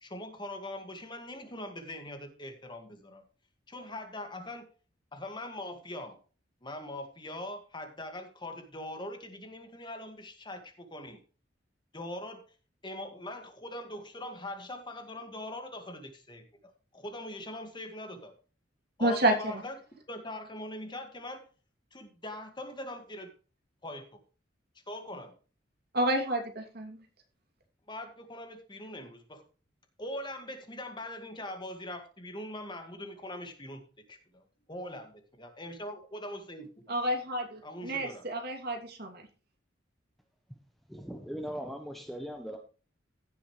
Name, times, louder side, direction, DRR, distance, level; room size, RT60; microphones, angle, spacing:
voice 1, 0.0-3.2 3.7-4.6 5.1-6.2 6.6-11.2 11.9-12.4 12.8-18.3 19.0-19.7 20.1-21.4 21.9-23.3 23.8-24.2 24.9-25.3 27.9-29.4 30.0-33.8 34.1-34.4 34.7-37.0 37.6-38.2, left 1 dB, 25° left, 6 dB, 2.0 m, -42 dB
voice 2, 19.0-19.3 25.9-27.0 36.9-39.2, right 1 dB, 60° right, 3 dB, 2.8 m, -29 dB
voice 3, 40.9-42.6, equal, ahead, 4 dB, 1.0 m, -39 dB
16.0 x 7.0 x 3.2 m, 0.36 s
head